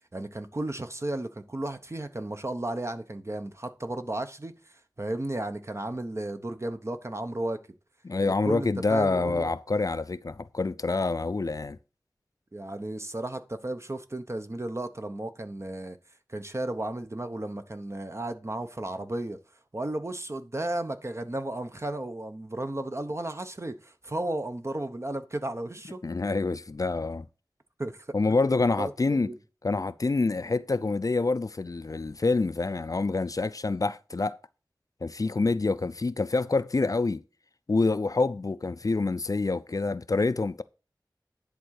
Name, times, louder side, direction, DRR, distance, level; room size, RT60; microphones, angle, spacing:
voice 1, 0.1-7.6 8.2-9.5 12.5-16.0 16.3-19.4 19.7-26.0 27.8-28.1 28.8-29.4, right 1 dB, 35° right, 0.9 m, -34 dB
voice 2, 8.0-11.8 26.0-27.3 28.1-29.3 29.6-34.4 35.0-37.2 37.7-40.6, left 3 dB, 50° left, 0.4 m, -27 dB
10.5 x 3.8 x 6.4 m
wide cardioid pair, 55°, 8 cm